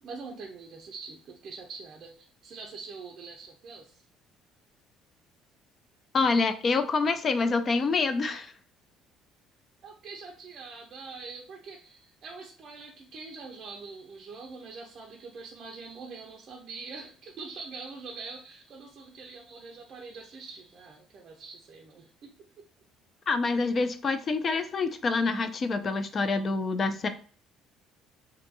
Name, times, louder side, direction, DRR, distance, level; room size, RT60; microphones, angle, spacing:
voice 1, 0.0-4.0 9.8-22.3 22.6-22.7, right 4 dB, 45° right, 0 dB, 0.5 m, -44 dB
voice 2, 6.1-8.5 23.3-27.1, left 4 dB, 35° left, 10 dB, 0.3 m, -26 dB
2.6 x 2.4 x 2.6 m, 0.44 s
cardioid pair, 120°, 0 cm